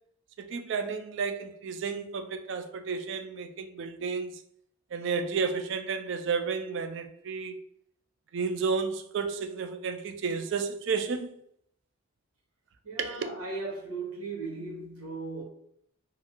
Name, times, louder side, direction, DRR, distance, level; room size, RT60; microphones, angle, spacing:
voice 1, 0.4-4.4 4.9-7.6 8.3-11.3 13.0-13.2, right 5 dB, 55° right, 0.3 m, -32 dB
voice 2, 12.8-15.4, right 3 dB, 85° right, 1.2 m, -37 dB
2.5 x 2.2 x 2.9 m
head